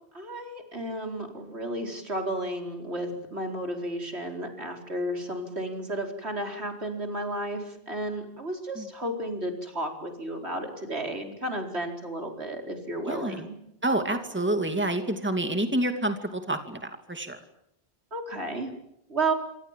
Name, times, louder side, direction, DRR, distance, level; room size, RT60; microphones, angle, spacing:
voice 1, 0.1-13.5 18.1-18.7 19.1-19.3, right 1 dB, 80° right, 4 dB, 4.9 m, -32 dB
voice 2, 13.1-13.5 13.8-17.4, right 1 dB, 10° right, 7 dB, 2.5 m, -28 dB
28.0 x 26.5 x 7.6 m, 0.80 s
omnidirectional pair, 1.1 m